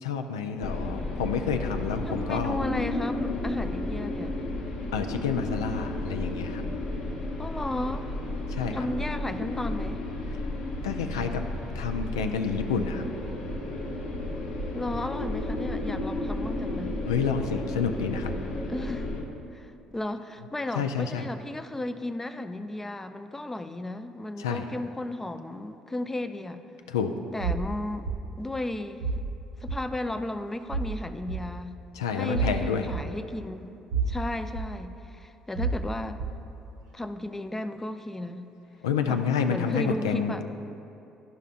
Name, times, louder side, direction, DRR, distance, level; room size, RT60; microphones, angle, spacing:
voice 1, 0.0-2.6 4.9-6.6 8.5-8.9 10.8-11.4 11.7-13.1 17.1-18.3 20.8-21.2 24.4-24.7 26.9-27.1 32.0-32.9 38.8-40.4, left 6 dB, 90° left, 6 dB, 0.3 m, -29 dB
sound 1, 0.6-19.2, left 2 dB, 70° left, 0.9 m, -33 dB
voice 2, 2.1-4.3 7.4-8.1 8.7-10.0 14.7-17.0 18.7-19.1 19.5-26.6 27.3-28.1 28.4-29.1 29.6-31.8 32.1-33.8 34.1-36.2 36.9-38.5 39.1-40.4, left 1 dB, 15° left, 10 dB, 0.4 m, -34 dB
sound 2, 27.4-27.6 28.1-28.2 29.0-29.3 29.7-29.8 30.7-30.9 31.3-31.4 32.3-32.5 32.9-33.0 33.9-34.2 34.5-34.6 35.6-35.8 36.2-36.3, right 5 dB, 75° right, 1.1 m, -28 dB
11.0 x 5.5 x 2.5 m, 2.8 s
hypercardioid pair, 55°, 2 cm